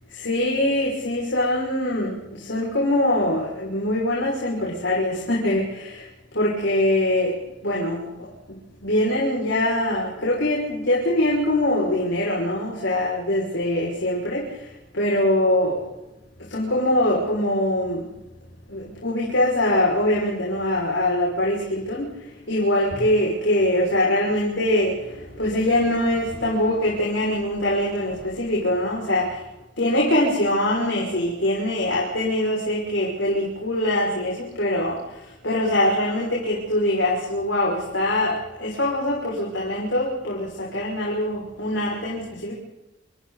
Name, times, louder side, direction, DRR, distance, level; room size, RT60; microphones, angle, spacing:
voice 1, 0.1-6.1 6.3-7.3 7.6-8.3 8.8-14.6 14.9-15.8 16.5-18.1 18.7-22.1 22.5-29.3 29.8-42.5, left 1 dB, 85° left, -5 dB, 6.4 m, -23 dB
28.5 x 28.0 x 4.3 m, 0.95 s
head